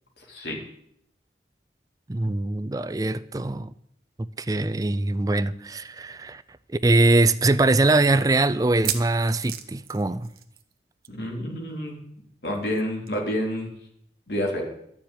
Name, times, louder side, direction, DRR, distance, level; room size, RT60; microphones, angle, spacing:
voice 1, 2.1-3.7 4.4-6.4 6.7-10.3, right 2 dB, 20° right, 0.4 m, -22 dB
sound 1, 6.0-6.1 6.4-6.5 7.1-7.2 8.6-10.8 11.0-11.3 11.5-11.6 13.1-13.2, right 11 dB, 55° right, 1.1 m, -34 dB
voice 2, 11.1-11.9 12.4-13.7 14.3-14.6, equal, 65° left, 3.3 m, -28 dB
11.5 x 7.3 x 9.2 m
head